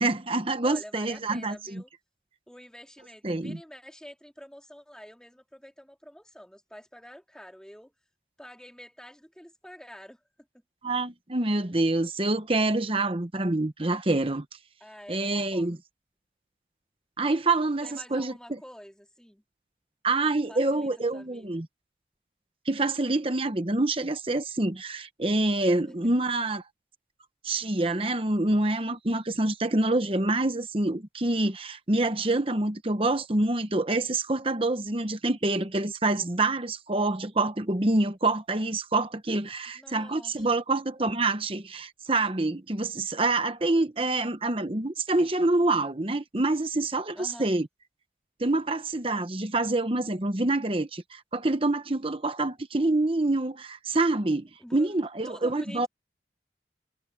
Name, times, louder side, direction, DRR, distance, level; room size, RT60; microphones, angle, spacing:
voice 1, 0.0-1.8 3.2-3.6 10.8-14.5 15.1-15.8 17.2-18.6 20.0-21.7 22.6-26.6 27.4-47.7 48.4-55.9, right 2 dB, 30° right, 1.0 m, -26 dB
voice 2, 0.6-1.9 2.5-7.9 8.4-10.2 14.8-15.8 17.8-19.4 20.5-21.6 25.8-25.9 39.7-40.6 47.2-47.5 54.6-55.0 55.2-55.9, equal, 5° left, 2.4 m, -47 dB
head